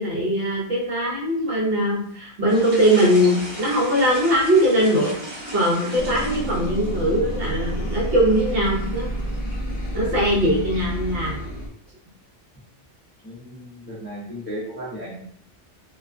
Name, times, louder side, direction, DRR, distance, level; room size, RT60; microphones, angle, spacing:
voice 1, 0.0-5.1 5.5-9.1 9.9-11.4, equal, 60° right, -4 dB, 0.8 m, -21 dB
sound 1, 2.5-11.4, equal, 30° right, 0.9 m, -39 dB
sound 2, 6.0-11.7, right 1 dB, 60° left, 0.8 m, -29 dB
voice 2, 13.2-15.2, equal, 10° left, -8 dB, 0.6 m, -35 dB
2.3 x 2.3 x 2.4 m, 0.64 s
omnidirectional pair, 1.2 m